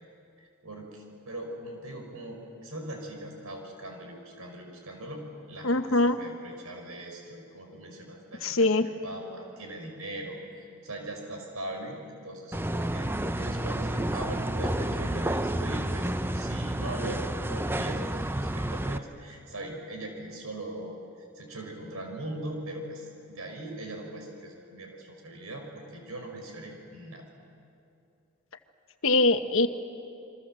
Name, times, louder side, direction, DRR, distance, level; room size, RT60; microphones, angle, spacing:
voice 1, 0.4-10.4 10.8-20.9 21.4-27.2, right 1 dB, 90° right, 3 dB, 5.7 m, -40 dB
voice 2, 5.6-6.2 8.4-8.9 29.0-29.7, left 2 dB, 65° left, 9 dB, 1.3 m, -22 dB
sound 1, 12.5-19.0, right 1 dB, 10° right, 0.6 m, -30 dB
28.0 x 23.5 x 7.7 m, 2.6 s
head